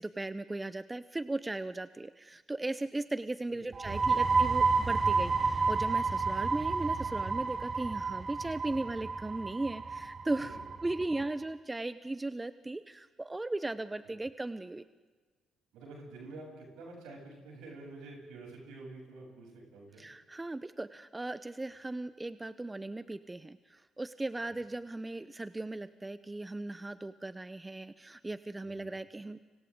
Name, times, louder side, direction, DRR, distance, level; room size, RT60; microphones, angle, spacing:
voice 1, 0.0-10.6 10.8-14.8 20.0-29.4, right 2 dB, 20° right, 14 dB, 0.7 m, -37 dB
voice 2, 3.5-4.2 10.3-10.6 15.7-20.0 28.6-28.9, right 2 dB, 75° right, 0 dB, 7.9 m, -49 dB
sound 1, 3.7-11.2, right 4 dB, 40° right, 0.9 m, -30 dB
30.0 x 26.0 x 3.8 m, 1.3 s
hypercardioid pair, 50°, 0 cm